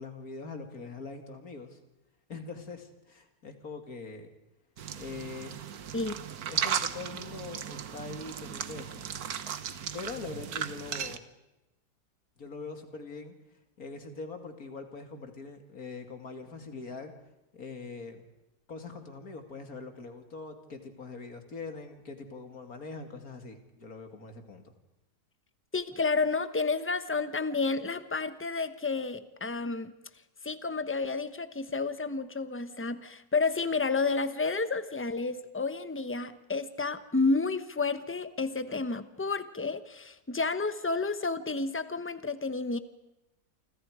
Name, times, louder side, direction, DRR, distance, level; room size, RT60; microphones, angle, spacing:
voice 1, 0.0-1.8 2.3-4.3 5.0-5.5 6.5-9.1 9.9-11.3 12.4-17.1 17.5-18.2 18.7-24.7, left 4 dB, 55° left, 6 dB, 2.9 m, -43 dB
sound 1, 4.8-11.2, right 8 dB, 60° right, 1.5 m, -36 dB
voice 2, 25.7-29.9 30.4-42.8, left 4 dB, 10° left, 12 dB, 0.8 m, -30 dB
29.0 x 25.5 x 5.0 m, 0.94 s
omnidirectional pair, 1.8 m